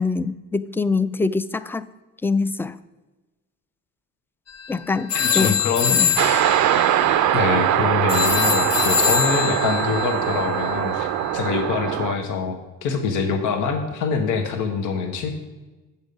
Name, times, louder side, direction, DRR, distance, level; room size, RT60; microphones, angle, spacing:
voice 1, 0.0-1.8 2.2-2.8 4.7-5.6 6.0-6.1, left 4 dB, 10° left, 15 dB, 0.3 m, -24 dB
sound 1, 4.5-4.7 5.1-11.8, left 7 dB, 55° left, 1.0 m, -25 dB
voice 2, 5.1-6.0 7.3-11.1 11.3-15.3, left 5 dB, 90° left, 5 dB, 1.0 m, -25 dB
sound 2, 6.1-12.1, right 12 dB, 80° right, 0.5 m, -22 dB
8.1 x 7.1 x 5.2 m, 1.2 s
cardioid pair, 90°, 30 cm